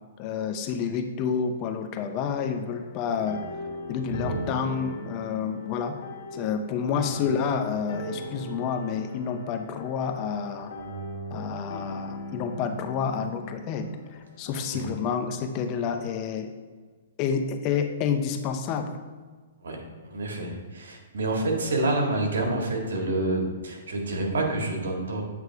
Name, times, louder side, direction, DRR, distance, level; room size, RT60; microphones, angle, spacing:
voice 1, 0.2-3.4 3.9-6.0 6.3-10.7 11.3-16.5 17.2-19.0, left 6 dB, 30° left, 7 dB, 0.5 m, -29 dB
sound 1, 2.3-15.1, equal, 60° left, 1.7 m, -39 dB
voice 2, 4.1-4.4 14.7-14.8 19.6-25.2, right 2 dB, 85° right, 1 dB, 1.7 m, -28 dB
8.5 x 3.2 x 4.6 m, 1.5 s
hypercardioid pair, 150°, 0 cm